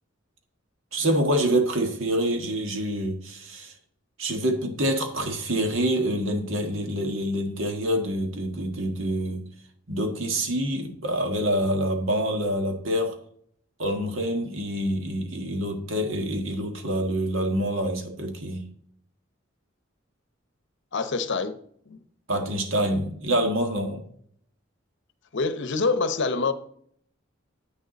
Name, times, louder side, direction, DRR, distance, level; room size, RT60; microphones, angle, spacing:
voice 1, 0.9-3.7 4.2-9.5 9.9-13.2 13.8-18.6 22.3-24.0, right 1 dB, 75° right, 1.6 m, -26 dB
voice 2, 20.9-21.6 21.9-22.0 25.3-26.5, left 4 dB, 65° left, 0.7 m, -25 dB
8.8 x 6.5 x 4.0 m
head